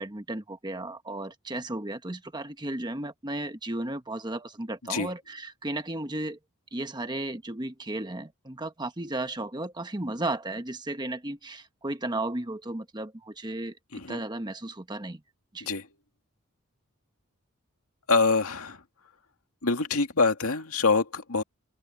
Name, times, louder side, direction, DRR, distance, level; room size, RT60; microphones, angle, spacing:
voice 1, 0.0-6.4 6.7-13.8 14.1-15.2 15.5-15.7, right 2 dB, 20° right, 1.2 m, -34 dB
voice 2, 18.1-18.8 19.6-21.4, left 4 dB, 85° left, 2.3 m, -25 dB
open air
head